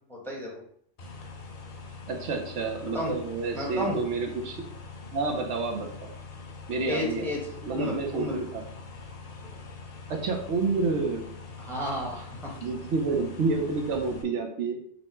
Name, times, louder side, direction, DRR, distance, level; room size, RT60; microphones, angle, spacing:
voice 1, 0.1-0.6 2.9-3.1 3.5-4.0 6.9-7.4 7.7-8.4 11.6-12.5, left 1 dB, ahead, -2 dB, 1.0 m, -32 dB
Computer fan, 1.0-14.2, left 4 dB, 45° left, 0.5 m, -43 dB
voice 2, 2.1-4.7 5.1-5.9 6.7-7.3 7.6-8.6 10.1-11.3 12.6-14.8, right 4 dB, 85° right, 2 dB, 1.1 m, -29 dB
4.2 x 2.1 x 4.3 m, 0.63 s
omnidirectional pair, 1.2 m